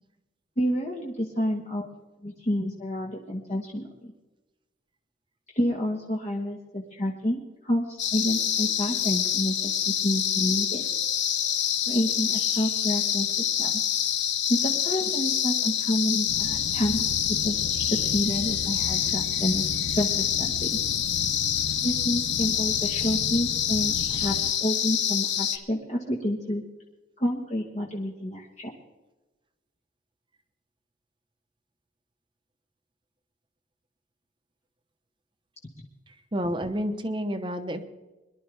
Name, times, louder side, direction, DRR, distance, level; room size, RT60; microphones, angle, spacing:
voice 1, 0.6-1.9 2.2-4.1 5.5-10.8 11.9-13.7 14.5-19.6 20.0-20.7 21.8-26.6 27.2-28.7, equal, 40° left, -1 dB, 1.4 m, -29 dB
sound 1, 8.0-25.6, left 9 dB, 70° left, 1.0 m, -26 dB
sound 2, 16.3-24.5, left 3 dB, 85° left, 0.7 m, -37 dB
voice 2, 36.1-37.8, equal, 25° right, 8 dB, 0.9 m, -30 dB
22.5 x 11.5 x 3.4 m, 1.1 s
head